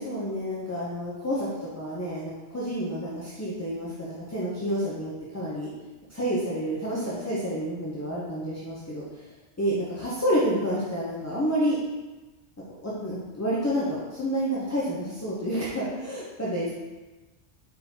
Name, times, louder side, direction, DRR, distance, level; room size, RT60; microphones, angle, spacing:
voice 1, 0.0-5.7 6.1-9.0 9.6-11.8 12.8-16.7, equal, 25° left, -8 dB, 0.4 m, -29 dB
4.4 x 3.6 x 2.7 m, 1.2 s
omnidirectional pair, 1.2 m